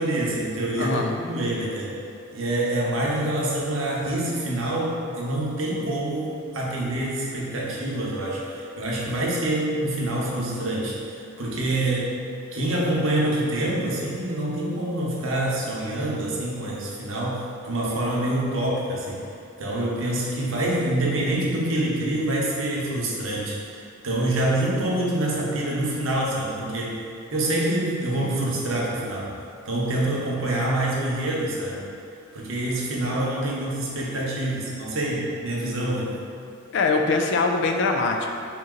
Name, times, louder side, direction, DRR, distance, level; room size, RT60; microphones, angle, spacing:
voice 1, 0.0-1.9 2.3-12.1 12.5-19.2 19.6-26.9 27.3-29.3 29.7-31.8 32.3-36.2, right 1 dB, 85° right, -4 dB, 0.8 m, -26 dB
voice 2, 0.8-1.2 36.7-38.4, left 3 dB, 60° left, 3 dB, 0.4 m, -23 dB
3.8 x 2.9 x 3.7 m, 2.5 s
head